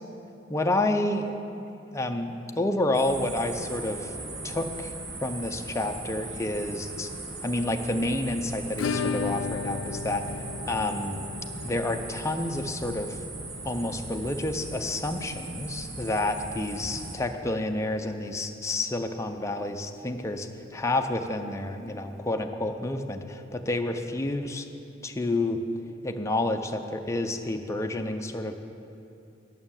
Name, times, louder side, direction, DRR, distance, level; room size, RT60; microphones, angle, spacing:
voice 1, 0.5-1.4 1.9-4.1 4.4-4.9 5.2-7.1 7.4-10.2 10.7-11.2 11.6-13.2 13.6-20.5 20.7-24.7 25.0-25.6 26.0-28.5, left 2 dB, 15° left, 5 dB, 0.5 m, -29 dB
sound 1, 2.9-17.2, right 2 dB, 70° right, 1.3 m, -39 dB
Acoustic guitar / Strum, 8.8-17.4 17.6-17.7 18.0-18.1 18.5-18.6 20.6-20.7 21.9-22.0, left 5 dB, 80° left, 0.4 m, -36 dB
11.0 x 6.4 x 7.2 m, 2.7 s
head